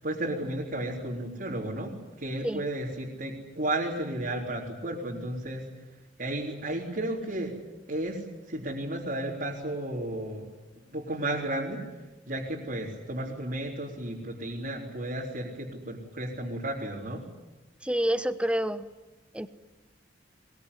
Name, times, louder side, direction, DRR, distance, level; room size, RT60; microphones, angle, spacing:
voice 1, 0.0-5.8 6.2-7.6 7.9-10.5 10.9-11.8 12.3-17.2, right 1 dB, 50° right, -4 dB, 3.9 m, -33 dB
voice 2, 17.8-18.8 19.3-19.5, equal, 5° right, 12 dB, 1.0 m, -27 dB
22.0 x 22.0 x 9.9 m, 1.1 s
head